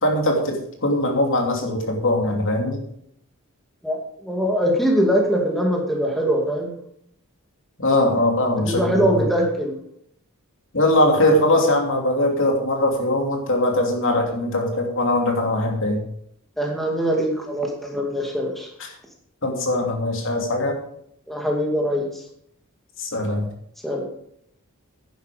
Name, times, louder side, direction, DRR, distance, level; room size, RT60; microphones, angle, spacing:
voice 1, 0.0-2.8 7.8-9.2 10.7-16.0 18.8-18.9 19.4-20.8 23.0-23.5, left 1 dB, 60° left, 2 dB, 2.9 m, -21 dB
voice 2, 3.8-6.7 8.7-9.8 16.6-18.7 21.3-22.1 23.8-24.0, equal, ahead, 0 dB, 2.3 m, -22 dB
11.0 x 10.0 x 5.1 m, 0.69 s
head